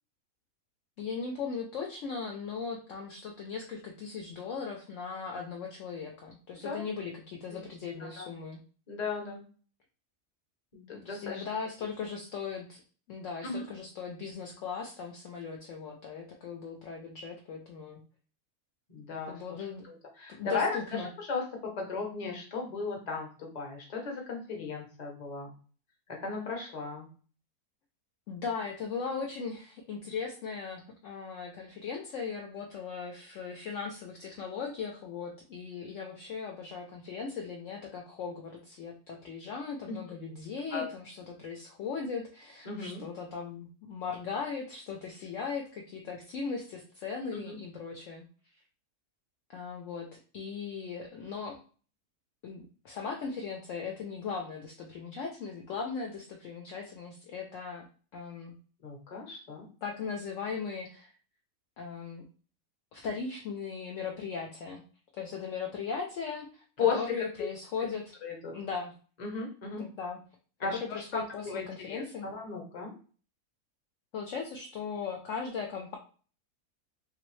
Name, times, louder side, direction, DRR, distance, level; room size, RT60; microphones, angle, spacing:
voice 1, 1.0-8.6 11.0-12.8 13.1-18.0 19.3-19.9 20.3-21.1 28.3-48.2 49.5-51.6 52.4-57.9 58.1-58.5 59.8-61.1 61.8-62.2 62.9-64.8 65.1-68.1 68.5-68.9 69.8-70.2 70.6-72.3 74.1-76.0, left 5 dB, 65° left, 1 dB, 0.8 m, -38 dB
voice 2, 8.0-8.3 8.9-9.4 10.7-11.4 13.4-13.6 18.9-19.4 19.9-20.8 21.2-25.5 26.1-27.1 40.7-40.9 42.6-43.0 47.3-47.5 58.8-59.7 66.8-67.0 68.2-68.6 69.2-69.8 70.6-72.9, left 5 dB, 35° left, 1 dB, 0.8 m, -35 dB
3.0 x 2.6 x 3.0 m, 0.40 s
omnidirectional pair, 1.6 m